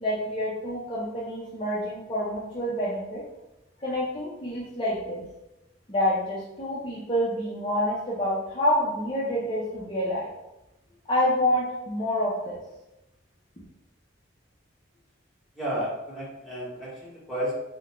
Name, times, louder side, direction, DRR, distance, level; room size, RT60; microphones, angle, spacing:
voice 1, 0.0-3.2 3.8-5.2 5.9-10.3 11.1-12.6, equal, 25° left, -9 dB, 0.5 m, -27 dB
voice 2, 15.5-17.6, equal, ahead, -9 dB, 1.0 m, -32 dB
3.6 x 2.1 x 2.9 m, 0.92 s
head